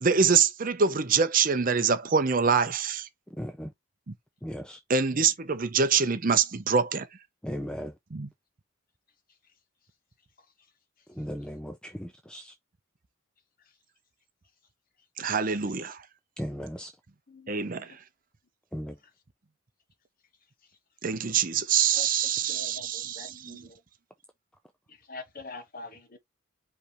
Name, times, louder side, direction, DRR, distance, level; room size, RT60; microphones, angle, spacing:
voice 1, 0.0-3.1 4.1-4.2 4.9-7.1 8.1-8.3 15.2-16.0 17.5-18.0 21.0-23.7, right 6 dB, 40° right, 0.6 m, -25 dB
voice 2, 3.4-3.7 4.4-4.8 7.4-7.9 11.2-12.5 16.4-16.9 18.7-19.0, equal, 5° left, 0.4 m, -36 dB
voice 3, 22.5-23.8 24.9-26.2, left 3 dB, 40° left, 1.2 m, -44 dB
5.1 x 3.3 x 3.0 m
head